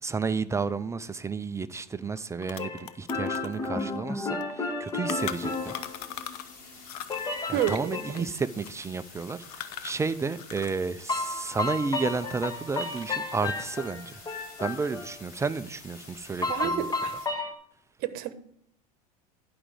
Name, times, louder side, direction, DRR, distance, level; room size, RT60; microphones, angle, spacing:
voice 1, 0.0-5.7 7.5-14.2 14.6-16.9, right 4 dB, 15° right, 0.5 m, -32 dB
sound 1, 1.8-1.9 2.2-6.6 6.8-10.9 11.1-12.3 12.6-13.3, left 11 dB, 80° left, 0.7 m, -41 dB
sound 2, 2.6-6.4 7.1-8.2 11.1-15.2 16.4-17.5, left 3 dB, 20° left, 1.2 m, -32 dB
sound 3, 5.2-17.3, left 3 dB, 50° left, 3.0 m, -49 dB
voice 2, 7.5-8.3 16.5-17.5 18.0-18.3, right 11 dB, 55° right, 1.0 m, -31 dB
11.0 x 5.2 x 4.8 m
hypercardioid pair, 100°, 20 cm